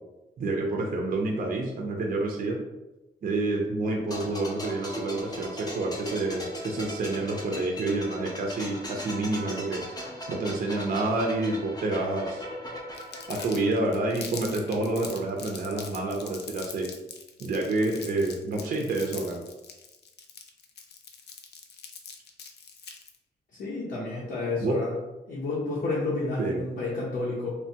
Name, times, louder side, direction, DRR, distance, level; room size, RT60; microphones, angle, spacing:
voice 1, 0.4-2.6 3.2-9.9 10.3-12.4 13.3-16.9 17.4-19.4 24.6-24.8 26.4-26.6, right 2 dB, 50° right, 0 dB, 0.4 m, -28 dB
sound 1, 4.1-14.7 15.0-15.2, equal, 20° left, 0.6 m, -39 dB
Crumpling crinkling, 12.9-23.2, left 6 dB, 65° left, 0.4 m, -43 dB
voice 2, 23.6-24.9 25.3-27.6, left 2 dB, 85° left, -7 dB, 0.8 m, -30 dB
3.0 x 2.2 x 2.7 m, 1.0 s
cardioid pair, 100°, 18 cm